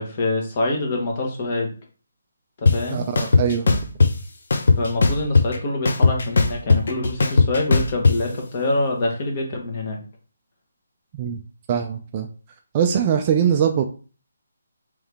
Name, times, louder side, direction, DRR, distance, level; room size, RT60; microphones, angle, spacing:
voice 1, 0.0-1.7 2.6-3.0 4.8-10.0, left 2 dB, 30° left, 0 dB, 1.1 m, -25 dB
sound 1, 2.7-2.8 3.2-4.1 4.5-5.6 5.9-8.1, left 4 dB, 60° left, 0.6 m, -16 dB
voice 2, 2.9-3.8 11.2-11.4 11.7-12.3 12.7-13.9, right 8 dB, 25° right, 5 dB, 0.3 m, -22 dB
3.6 x 3.2 x 3.4 m, 0.38 s
hypercardioid pair, 170°, 0 cm